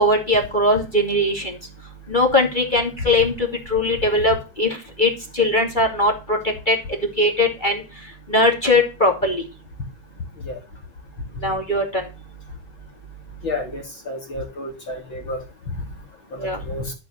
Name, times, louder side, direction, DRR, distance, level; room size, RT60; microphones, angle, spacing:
voice 1, 0.0-1.6 2.1-6.8 7.2-7.8 8.3-9.4 11.4-12.0 16.4-16.6, left 1 dB, 20° left, 3 dB, 1.4 m, -20 dB
voice 2, 13.4-15.4 16.4-16.9, left 2 dB, 45° left, 3 dB, 1.7 m, -30 dB
13.0 x 5.4 x 6.5 m, 0.31 s
omnidirectional pair, 5.0 m